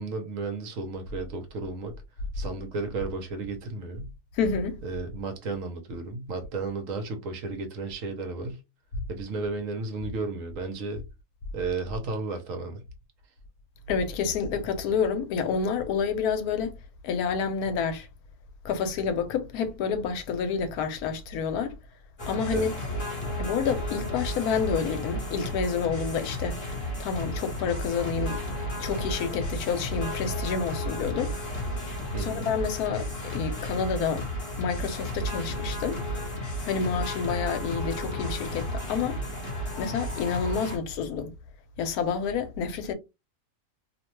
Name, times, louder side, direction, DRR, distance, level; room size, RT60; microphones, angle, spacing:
voice 1, 0.0-1.9 2.3-4.1 4.8-8.6 9.1-11.0 11.5-12.8 22.5-22.7 32.1-32.4, right 3 dB, 65° right, 1.0 m, -33 dB
voice 2, 4.3-4.8 8.9-9.0 13.9-16.7 17.0-18.1 18.6-21.8 22.3-22.7 23.4-28.4 28.8-31.3 32.1-34.3 34.6-36.0 36.6-39.2 39.8-41.3 41.8-42.9, left 6 dB, 80° left, 1.1 m, -29 dB
sound 1, 22.2-40.8, equal, 40° left, 1.1 m, -33 dB
2.7 x 2.2 x 3.0 m
omnidirectional pair, 1.6 m